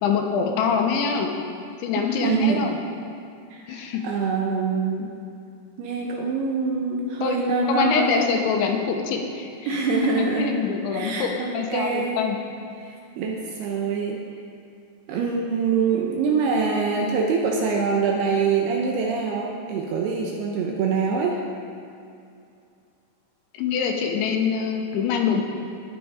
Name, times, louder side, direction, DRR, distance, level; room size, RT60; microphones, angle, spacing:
voice 1, 0.0-1.3 1.8-2.8 3.7-4.0 7.2-7.4 7.7-9.7 10.2-12.4 23.5-25.4, left 6 dB, 80° left, 2 dB, 3.4 m, -24 dB
voice 2, 2.0-2.7 3.5-5.1 5.8-8.3 9.7-10.6 10.9-12.3 12.8-14.2 15.1-21.4, right 5 dB, 75° right, 0 dB, 2.5 m, -25 dB
20.0 x 6.9 x 5.0 m, 2.5 s
omnidirectional pair, 5.4 m